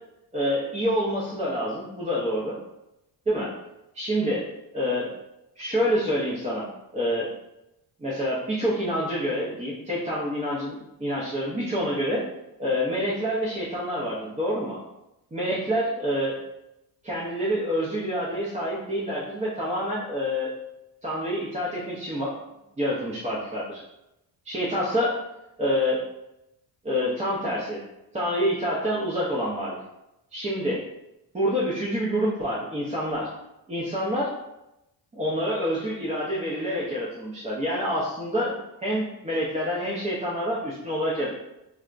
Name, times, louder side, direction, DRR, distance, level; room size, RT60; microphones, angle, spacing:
voice 1, 0.3-2.5 3.3-3.5 3.9-4.4 4.7-5.1 5.6-6.7 6.9-7.3 8.0-12.2 12.6-14.8 15.3-16.4 17.0-20.5 21.0-22.4 22.8-23.8 24.5-25.2 25.6-26.0 26.8-27.8 28.1-29.8 30.3-30.8 31.3-33.3 33.7-34.3 35.1-38.6 38.8-41.3, equal, 15° right, -7 dB, 0.5 m, -27 dB
4.4 x 2.0 x 2.4 m, 0.91 s
cardioid pair, 120°, 41 cm